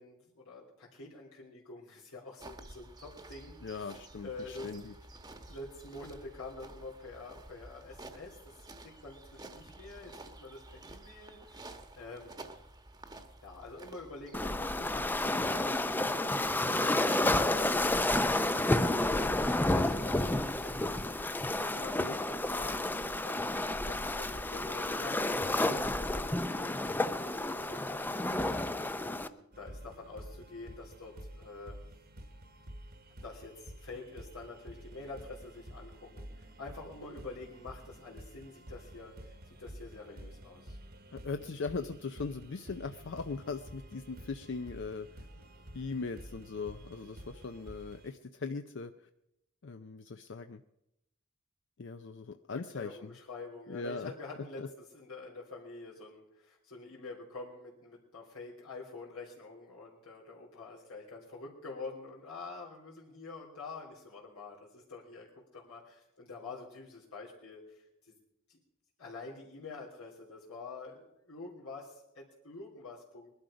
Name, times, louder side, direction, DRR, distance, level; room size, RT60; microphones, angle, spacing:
voice 1, 0.0-3.9 4.2-4.8 5.5-12.4 13.4-28.3 29.0-31.8 33.2-40.8 52.7-68.1 68.5-68.6 69.0-73.3, left 3 dB, 90° left, -6 dB, 3.3 m, -47 dB
sound 1, 2.4-14.5, right 2 dB, 20° right, 1.1 m, -51 dB
voice 2, 3.6-4.9 22.0-22.2 41.1-45.3 45.7-49.1 49.6-50.6 51.8-53.1 53.7-54.1 54.6-54.7, left 4 dB, 60° left, 9 dB, 0.5 m, -40 dB
Waves surf, 14.3-29.3, left 1 dB, 10° left, 0.4 m, -30 dB
sound 2, 29.5-48.1, equal, 45° right, 1.1 m, -50 dB
21.0 x 11.5 x 5.1 m, 0.86 s
head